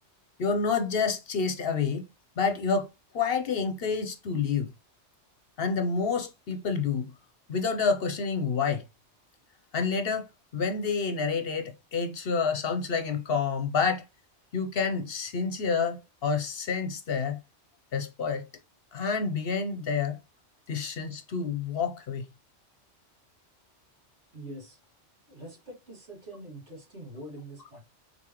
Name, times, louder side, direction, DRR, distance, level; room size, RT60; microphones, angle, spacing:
voice 1, 0.4-2.0 2.4-2.9 3.1-4.7 5.6-7.1 7.5-8.8 9.7-10.3 10.5-14.0 14.5-17.4 17.9-18.5 18.9-20.2 20.7-22.3, left 5 dB, 60° left, 0.9 m, -28 dB
voice 2, 24.3-24.8 25.3-27.8, right 1 dB, 75° right, 2.8 m, -44 dB
4.0 x 3.8 x 2.9 m
omnidirectional pair, 1.2 m